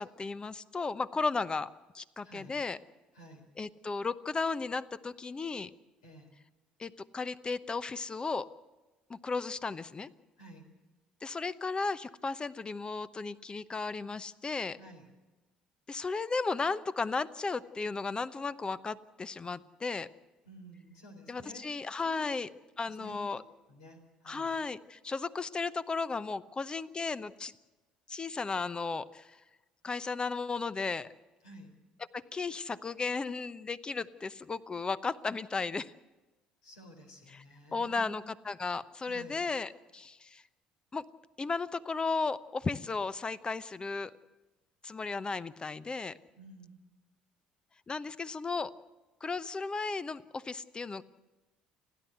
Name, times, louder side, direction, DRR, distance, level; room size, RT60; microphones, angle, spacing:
voice 1, 0.0-2.8 3.6-5.7 6.8-8.5 9.1-10.1 11.2-14.8 15.9-20.1 21.3-22.5 22.8-23.4 24.2-27.6 28.1-29.4 29.8-31.1 32.1-35.9 37.3-37.4 37.7-40.4 40.9-41.1 41.4-44.1 44.8-46.2 47.9-48.7 49.2-51.0, left 4 dB, 25° left, 16 dB, 0.9 m, -35 dB
voice 2, 2.2-2.5 3.1-3.4 6.0-6.3 10.4-10.6 14.8-15.1 20.4-21.7 22.0-22.1 22.8-23.4 23.7-24.5 31.4-31.7 36.6-38.3 39.1-39.4 46.4-46.8, right 1 dB, 80° left, 3 dB, 3.8 m, -52 dB
29.5 x 11.5 x 8.0 m, 1.1 s
hypercardioid pair, 55°, 3 cm